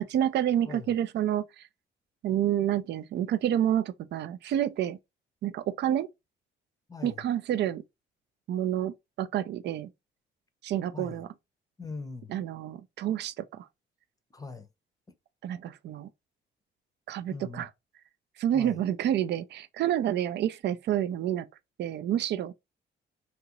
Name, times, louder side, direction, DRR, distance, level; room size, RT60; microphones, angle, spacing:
voice 1, 0.0-1.7 2.2-5.0 5.4-6.1 7.0-7.8 8.5-9.9 10.6-11.3 12.3-13.7 15.4-16.1 17.1-17.7 18.4-21.5 21.8-22.5, right 11 dB, 60° right, 0.4 m, -29 dB
voice 2, 6.9-7.2 10.9-11.2 11.8-12.3 14.3-14.7 17.3-17.7 18.5-18.8, left 4 dB, 15° left, 0.6 m, -40 dB
2.8 x 2.4 x 2.9 m
cardioid pair, 90°, 20 cm